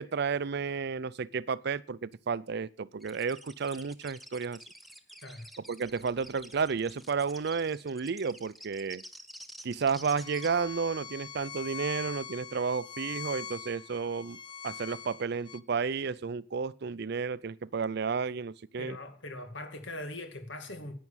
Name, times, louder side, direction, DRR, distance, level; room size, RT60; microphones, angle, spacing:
voice 1, 0.0-4.6 5.7-9.0 9.6-14.4 14.6-19.0, right 5 dB, 60° right, 0.5 m, -32 dB
sound 1, 3.0-10.5, right 1 dB, ahead, 0.9 m, -50 dB
Bowed string instrument, 10.2-15.6, left 7 dB, 25° left, 0.5 m, -42 dB
voice 2, 18.8-20.9, left 1 dB, 65° left, 2.2 m, -41 dB
11.0 x 9.4 x 7.3 m
head